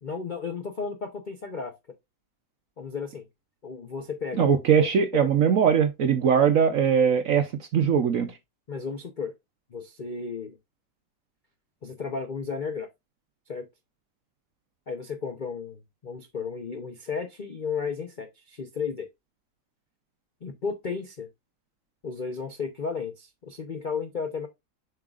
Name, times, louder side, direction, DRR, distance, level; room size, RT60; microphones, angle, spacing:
voice 1, 0.0-1.7 2.8-3.2 3.6-4.6 5.1-5.3 8.7-9.3 9.7-10.6 11.8-12.9 13.5-13.6 14.9-19.1 20.4-21.3 22.0-24.5, left 5 dB, 80° left, 0.4 m, -33 dB
voice 2, 4.3-8.4, right 7 dB, 65° right, 0.8 m, -21 dB
7.3 x 5.6 x 2.4 m
omnidirectional pair, 2.1 m